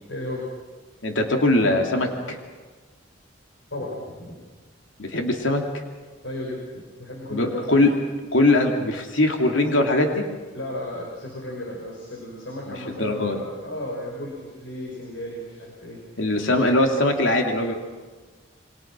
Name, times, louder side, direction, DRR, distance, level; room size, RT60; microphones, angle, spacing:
voice 1, 0.1-0.4 3.7-4.3 6.2-6.6 7.0-7.7 10.5-16.0, left 1 dB, 70° left, -2 dB, 5.5 m, -34 dB
voice 2, 1.0-2.4 5.0-5.6 7.3-7.9 8.3-10.2 12.7-13.4 16.2-17.7, left 2 dB, 85° left, 3 dB, 2.9 m, -21 dB
28.0 x 24.5 x 6.2 m, 1.3 s
head